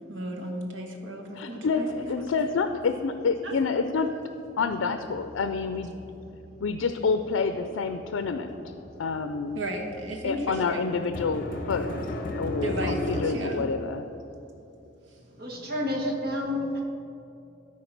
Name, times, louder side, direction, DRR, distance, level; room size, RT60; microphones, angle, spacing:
voice 1, 0.1-1.9 2.2-2.3 3.4-3.5 9.5-10.9 12.6-13.6 15.1-15.2, right 1 dB, 80° right, 2 dB, 1.2 m, -34 dB
voice 2, 1.3-4.2 4.6-5.9 6.6-8.7 9.0-9.6 10.2-12.1 12.4-14.0, left 4 dB, 90° left, 9 dB, 0.4 m, -28 dB
sound 1, 1.9-3.6 3.9-13.3, left 1 dB, 45° left, 0.8 m, -37 dB
voice 3, 15.4-16.8, left 1 dB, 50° right, -1 dB, 1.5 m, -29 dB
13.0 x 4.7 x 5.8 m, 2.8 s
head